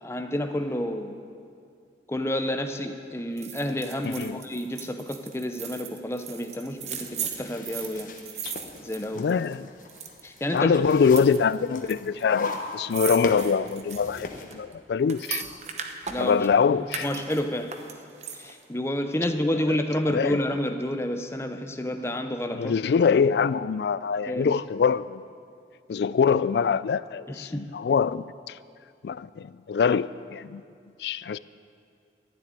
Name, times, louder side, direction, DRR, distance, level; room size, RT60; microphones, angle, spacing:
voice 1, 0.0-1.2 2.1-8.1 8.8-9.3 10.2-10.8 16.1-16.4 16.8-17.7 18.4-22.7 24.3-24.6 27.3-27.8, left 1 dB, 15° left, 0.7 m, -29 dB
sound 1, 3.4-9.5 9.8-10.4 10.9-11.9 12.2-12.3 12.5-16.5 16.9-18.6 19.0-19.1, right 7 dB, 40° right, 0.9 m, -37 dB
voice 2, 4.0-4.4 8.4-8.5 9.2-9.7 10.5-15.4 16.2-17.1 20.1-20.4 22.5-25.2 25.9-28.6 29.0-30.6 31.0-31.4, left 6 dB, 70° left, 0.3 m, -24 dB
sound 2, 6.7-14.5, left 2 dB, 45° left, 1.1 m, -40 dB
12.5 x 7.5 x 9.6 m
head